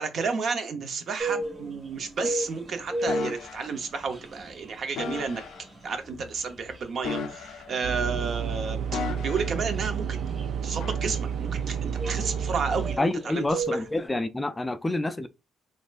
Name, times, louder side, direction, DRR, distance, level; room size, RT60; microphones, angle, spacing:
voice 1, 0.0-5.4 5.8-10.2 10.6-13.8, right 5 dB, 60° right, 0.7 m, -32 dB
sound 1, 1.2-14.0, right 1 dB, 30° right, 1.6 m, -37 dB
sound 2, 3.1-3.7 5.0-5.6 7.0-7.9 8.9-9.7 10.8-11.0, left 6 dB, 80° left, 0.5 m, -35 dB
sound 3, 7.8-13.0, right 7 dB, 80° right, 0.3 m, -30 dB
voice 2, 13.0-15.3, left 2 dB, 15° left, 0.3 m, -28 dB
4.1 x 2.5 x 2.4 m
cardioid pair, 90°, 0 cm